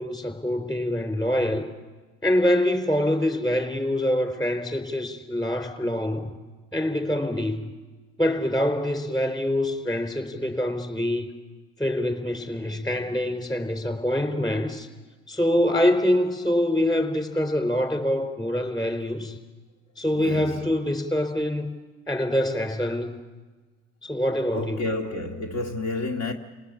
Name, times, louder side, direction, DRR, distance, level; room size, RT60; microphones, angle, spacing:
voice 1, 0.0-1.7 2.2-6.3 6.7-7.7 8.2-11.3 11.8-14.9 15.3-19.4 20.0-21.7 22.1-23.1 24.0-24.8, left 1 dB, 15° left, 4.0 m, -25 dB
voice 2, 20.1-20.6 24.5-26.3, left 2 dB, 60° left, 2.1 m, -30 dB
30.0 x 18.5 x 8.7 m
supercardioid pair, 85°, 31 cm